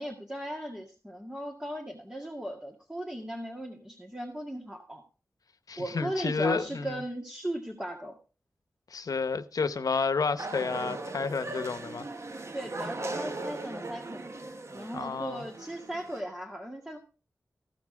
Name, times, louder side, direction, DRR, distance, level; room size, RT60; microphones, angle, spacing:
voice 1, 0.0-5.0 5.8-8.2 12.5-14.3 14.7-17.0, right 1 dB, 10° right, 1.9 m, -37 dB
voice 2, 5.7-7.0 8.9-12.1 14.9-15.4, left 4 dB, 80° left, 0.8 m, -30 dB
sound 1, 10.4-16.2, right 2 dB, 50° right, 1.1 m, -38 dB
15.0 x 6.0 x 4.7 m
wide cardioid pair, 60°, 6 cm